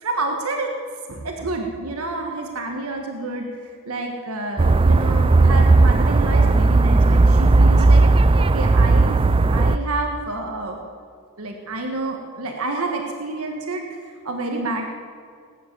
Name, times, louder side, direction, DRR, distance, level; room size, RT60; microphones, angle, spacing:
voice 1, 0.0-0.7 1.1-3.5 3.8-9.2 9.5-10.8 11.4-14.0 14.2-14.9, right 2 dB, 90° right, 2 dB, 1.6 m, -28 dB
sound 1, 4.6-9.8, right 3 dB, 25° right, 0.3 m, -15 dB
19.5 x 9.5 x 7.4 m, 2.1 s
head